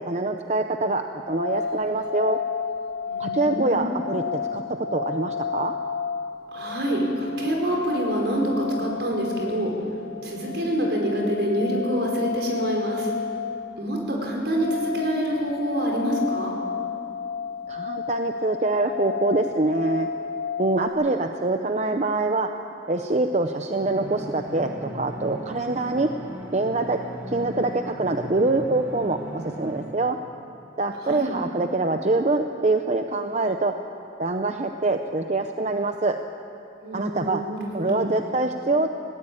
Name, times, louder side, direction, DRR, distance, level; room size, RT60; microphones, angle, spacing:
voice 1, 0.0-2.4 3.2-4.2 4.5-4.6 4.9-5.7 17.7-20.1 20.6-22.5 22.9-26.1 26.5-27.0 27.3-30.2 30.8-33.7 34.2-36.2 36.9-37.4 37.7-38.9, right 2 dB, 40° right, 6 dB, 0.7 m, -24 dB
sound 1, 1.2-20.9, left 6 dB, 30° left, 3.5 m, -32 dB
voice 2, 3.0-4.0 6.5-9.7 10.2-13.1 13.8-16.5 31.0-31.4 36.8-38.1, right 1 dB, 70° right, 0 dB, 5.0 m, -26 dB
sound 2, 23.8-29.8, equal, 15° right, 3.4 m, -38 dB
19.5 x 17.5 x 8.8 m, 2.7 s
head